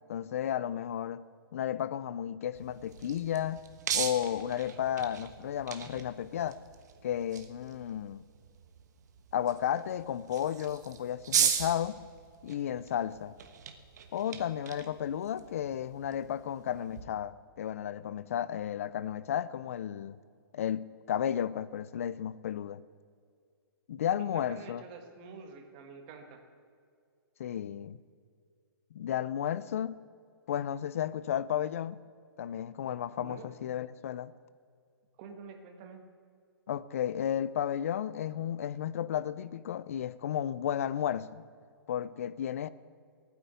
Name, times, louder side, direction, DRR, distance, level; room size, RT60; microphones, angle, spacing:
voice 1, 0.1-1.2 1.5-3.6 3.9-6.6 7.0-8.2 9.3-12.0 12.4-13.3 14.1-20.2 20.5-22.8 23.9-24.8 27.4-28.0 28.9-30.0 30.5-32.0 32.4-34.3 36.7-41.4 41.9-42.7, left 10 dB, 35° left, 0.5 m, -33 dB
sound 1, 2.5-17.0, right 8 dB, 45° right, 1.2 m, -38 dB
voice 2, 24.5-26.4 33.2-33.4 35.2-36.0, right 5 dB, 25° right, 1.5 m, -47 dB
16.0 x 9.6 x 8.2 m
hypercardioid pair, 175°, 13 cm